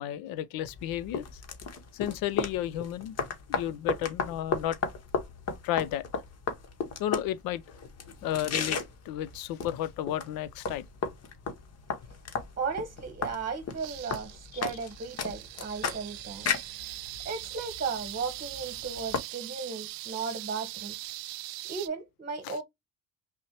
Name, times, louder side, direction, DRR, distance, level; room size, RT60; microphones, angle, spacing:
voice 1, 0.0-1.4 1.9-3.2 3.5-4.8 5.6-6.0 7.0-7.6 8.2-8.8 9.0-10.9 22.4-22.6, left 12 dB, 70° left, 0.6 m, -32 dB
sound 1, 0.6-19.2, left 5 dB, 45° left, 1.0 m, -35 dB
voice 2, 12.6-16.5 17.2-20.9 21.7-22.6, right 5 dB, 25° right, 1.0 m, -35 dB
sound 2, 13.8-21.9, right 17 dB, 70° right, 0.5 m, -41 dB
5.4 x 2.1 x 2.8 m
supercardioid pair, 70°, 36 cm